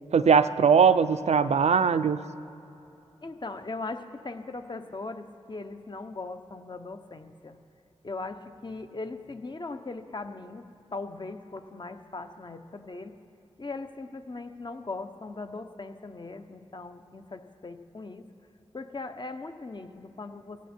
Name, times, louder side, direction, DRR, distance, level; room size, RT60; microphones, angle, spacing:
voice 1, 0.1-2.2, right 6 dB, 85° right, 13 dB, 0.5 m, -20 dB
voice 2, 3.2-7.6 8.0-10.6 10.9-13.1 13.6-18.2 18.7-20.7, left 3 dB, 45° left, 8 dB, 1.0 m, -39 dB
17.0 x 17.0 x 4.5 m, 3.0 s
wide cardioid pair, 60°, 11 cm